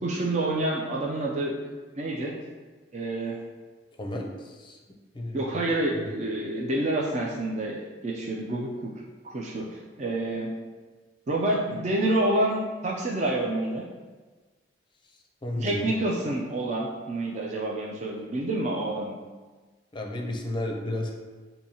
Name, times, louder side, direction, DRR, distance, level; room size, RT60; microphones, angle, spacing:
voice 1, 0.0-1.5 1.9-2.3 2.9-3.4 5.3-8.9 9.2-10.5 11.3-13.8 15.6-19.2, right 1 dB, 40° right, -2 dB, 0.5 m, -28 dB
voice 2, 4.0-4.8 5.1-5.6 5.9-6.1 9.5-9.6 11.7-11.8 15.4-16.0 19.9-21.1, left 1 dB, 25° left, 1 dB, 0.5 m, -33 dB
6.7 x 2.7 x 2.8 m, 1.3 s
head